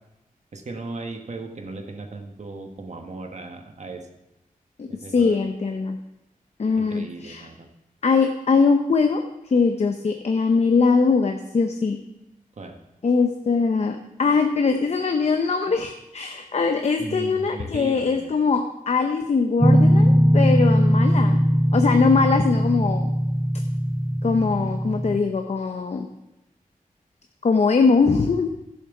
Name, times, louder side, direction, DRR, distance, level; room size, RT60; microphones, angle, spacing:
voice 1, 0.5-4.0 4.9-5.4 6.8-7.7 12.6-12.8 17.0-18.3, right 3 dB, 55° right, 4 dB, 1.2 m, -37 dB
voice 2, 5.1-6.0 6.6-7.5 8.0-12.0 13.0-21.4 21.7-23.1 24.2-26.1 27.4-28.5, left 4 dB, 50° left, 5 dB, 0.6 m, -21 dB
sound 1, 19.6-25.2, equal, 10° right, 0.6 m, -19 dB
11.0 x 7.2 x 4.8 m, 0.92 s
wide cardioid pair, 120°, 15 cm